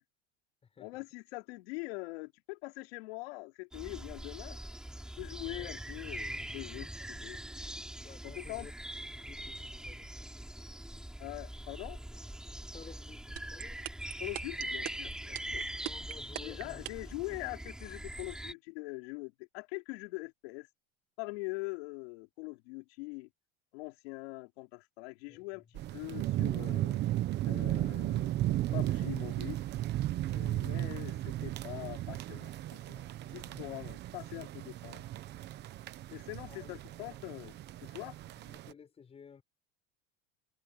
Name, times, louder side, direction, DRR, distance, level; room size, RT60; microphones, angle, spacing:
voice 1, 0.8-4.6 5.2-7.4 8.2-8.7 11.2-12.0 14.2-15.6 16.4-20.7 21.2-23.3 23.7-25.6 25.9-27.0 27.4-29.6 30.3-35.0 36.1-37.6 37.8-38.2, left 26 dB, 75° left, 4.7 m, -43 dB
sound 1, 3.7-18.5, right 1 dB, ahead, 4.6 m, -42 dB
voice 2, 5.5-5.8 8.0-8.7 9.0-10.1 12.7-13.8 15.8-16.9 17.3-17.6 25.3-25.7 30.2-31.3 33.4-33.8 36.5-37.1 38.4-39.4, left 6 dB, 20° left, 6.9 m, -54 dB
sound 2, 13.4-17.1, right 20 dB, 85° right, 2.2 m, -39 dB
sound 3, 25.7-38.7, right 14 dB, 35° right, 1.0 m, -35 dB
cardioid pair, 160°, 31 cm